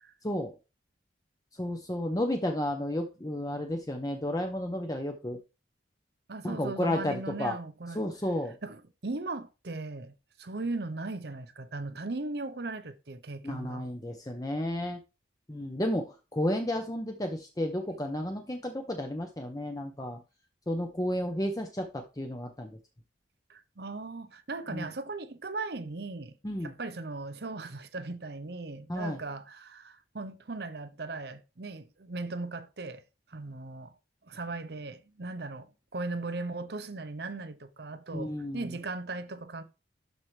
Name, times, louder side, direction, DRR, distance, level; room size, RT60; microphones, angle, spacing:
voice 1, 0.2-0.5 1.5-5.4 6.4-7.6 7.9-8.6 13.4-15.0 15.5-20.2 20.7-22.8 24.7-24.9 26.4-26.7 28.9-29.2 38.1-38.7, left 1 dB, 20° left, 0.7 m, -32 dB
voice 2, 6.3-8.0 8.6-13.9 23.5-26.4 26.6-33.0 33.3-33.9 34.2-35.7 35.9-39.6, right 3 dB, 60° right, 0.8 m, -38 dB
12.0 x 4.5 x 3.3 m
head